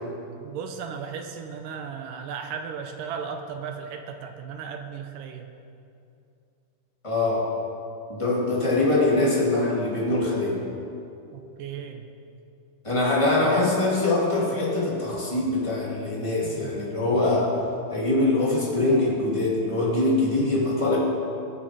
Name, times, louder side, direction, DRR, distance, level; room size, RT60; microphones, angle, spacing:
voice 1, 0.4-5.5 11.3-12.1 16.4-16.7, right 6 dB, 75° right, 5 dB, 2.1 m, -36 dB
voice 2, 7.0-7.5 8.1-10.6 12.8-17.5 17.9-21.0, left 2 dB, 10° left, -5 dB, 2.0 m, -23 dB
22.5 x 7.6 x 5.1 m, 2.6 s
omnidirectional pair, 4.4 m